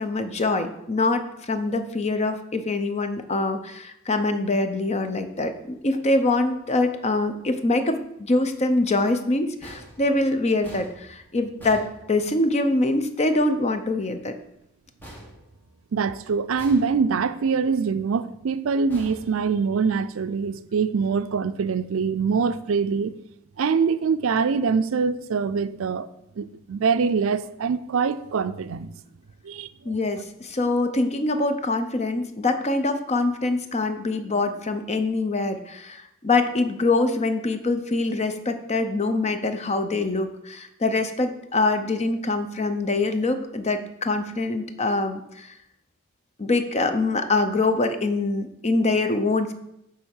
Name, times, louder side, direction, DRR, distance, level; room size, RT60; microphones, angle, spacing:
voice 1, 0.0-14.3 29.8-45.5 46.4-49.5, left 2 dB, 30° left, 0.7 m, -24 dB
sound 1, 9.6-12.7 15.0-16.1 16.6-17.4 18.9-20.0, right 1 dB, 10° left, 1.7 m, -46 dB
voice 2, 15.9-23.1 23.6-26.1 26.4-28.9 29.4-29.7, right 5 dB, 70° right, 0.4 m, -24 dB
9.7 x 3.5 x 6.4 m
head